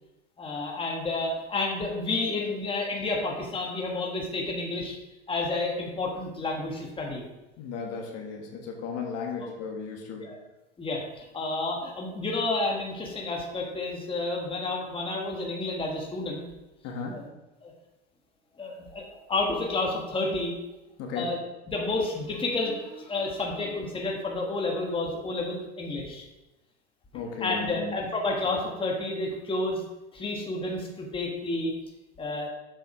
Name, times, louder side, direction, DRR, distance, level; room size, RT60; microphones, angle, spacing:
voice 1, 0.4-5.0 5.3-7.2 9.4-9.7 10.2-10.4 10.8-16.4 17.1-17.3 17.6-17.7 18.6-20.6 21.1-21.4 21.7-26.2 27.4-29.8 30.1-31.7 32.2-32.5, left 2 dB, 15° left, 0 dB, 1.5 m, -30 dB
voice 2, 7.6-10.3 16.8-17.2 21.0-21.3 27.1-27.9, left 5 dB, 50° left, 1 dB, 1.6 m, -35 dB
7.5 x 5.4 x 4.9 m, 1.0 s
hypercardioid pair, 100°, 33 cm